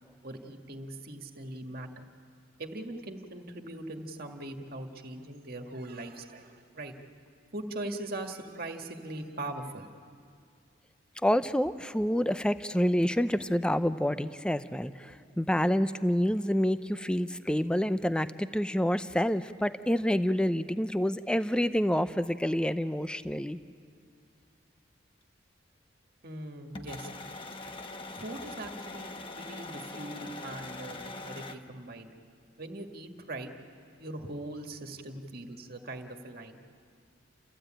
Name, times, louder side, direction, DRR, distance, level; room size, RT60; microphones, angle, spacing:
voice 1, 0.2-2.0 2.6-6.9 7.5-9.9 26.2-27.1 28.2-32.1 32.6-33.5 34.0-36.6, right 1 dB, 50° right, 4 dB, 1.8 m, -41 dB
voice 2, 11.2-23.6, equal, 5° left, 12 dB, 0.5 m, -28 dB
sound 1, 26.7-31.6, left 2 dB, 25° left, 1.1 m, -42 dB
29.5 x 15.0 x 8.9 m, 2.3 s
head